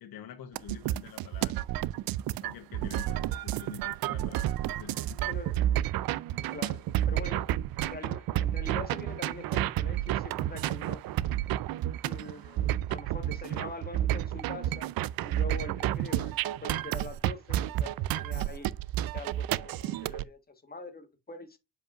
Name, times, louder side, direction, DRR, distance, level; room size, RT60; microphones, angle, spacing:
voice 1, 0.0-1.6 2.4-5.2, left 9 dB, 70° left, 1.2 m, -47 dB
sound 1, 0.6-20.2, right 13 dB, 70° right, 0.5 m, -31 dB
voice 2, 5.3-5.7 6.5-7.5 7.8-11.0 12.0-14.9 15.2-18.7 19.1-21.6, left 3 dB, 25° left, 1.6 m, -43 dB
7.7 x 5.0 x 2.6 m
cardioid pair, 115°, 37 cm